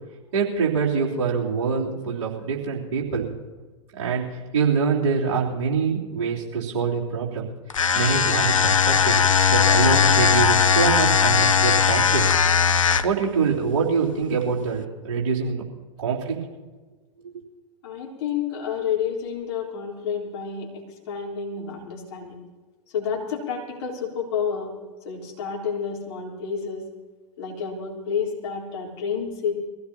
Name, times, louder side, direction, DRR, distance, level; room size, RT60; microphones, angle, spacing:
voice 1, 0.3-3.3 4.0-4.2 4.5-7.5 7.9-9.1 9.5-12.2 13.0-15.6 16.0-16.3, right 5 dB, 55° right, -6 dB, 3.4 m, -24 dB
sound 1, 7.7-13.2, left 6 dB, 75° left, 0.6 m, -19 dB
voice 2, 17.8-22.4 22.9-24.7 25.0-26.8 27.4-29.5, left 7 dB, 55° left, -2 dB, 3.8 m, -29 dB
23.5 x 16.0 x 2.9 m, 1.3 s
figure-of-eight pair, 95°, 17 cm